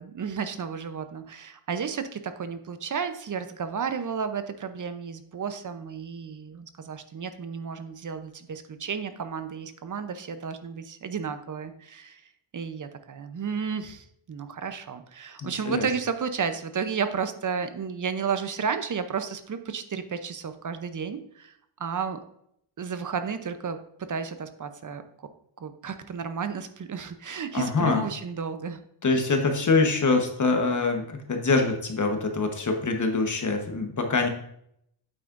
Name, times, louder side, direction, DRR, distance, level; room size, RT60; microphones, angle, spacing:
voice 1, 0.0-12.2 12.5-22.2 22.8-25.3 25.6-28.8 29.1-29.3, right 6 dB, 40° right, 9 dB, 0.7 m, -32 dB
voice 2, 15.4-15.9 27.5-28.1 29.0-34.3, left 3 dB, 40° left, 4 dB, 1.2 m, -24 dB
8.7 x 8.3 x 2.6 m, 0.72 s
wide cardioid pair, 130°, 48 cm